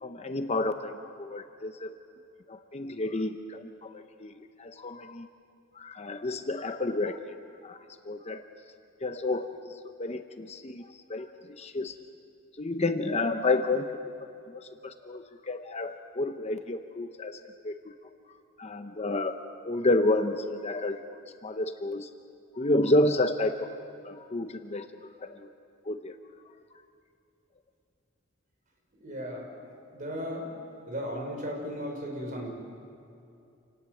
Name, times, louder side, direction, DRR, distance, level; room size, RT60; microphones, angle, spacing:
voice 1, 0.0-1.9 2.5-5.3 5.7-7.4 7.6-8.4 9.0-11.9 12.6-14.1 14.5-17.4 17.6-17.9 18.6-19.4 19.6-22.1 22.5-23.7 24.0-24.9 25.2-25.5 25.9-26.1, left 2 dB, 30° left, 7 dB, 0.8 m, -30 dB
voice 2, 29.0-29.5 29.9-30.5 30.9-32.6, equal, 40° right, 0 dB, 5.5 m, -35 dB
28.0 x 19.0 x 7.8 m, 2.6 s
head